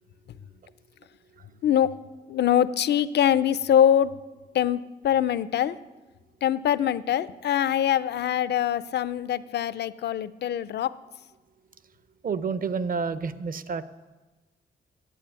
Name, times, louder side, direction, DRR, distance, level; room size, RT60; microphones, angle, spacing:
voice 1, 1.6-1.9 2.3-4.2 4.5-5.8 6.4-10.9, left 10 dB, 70° left, 16 dB, 0.5 m, -23 dB
voice 2, 12.2-13.8, right 5 dB, 50° right, 14 dB, 0.7 m, -29 dB
9.4 x 8.4 x 8.7 m, 1.2 s
cardioid pair, 80°, 18 cm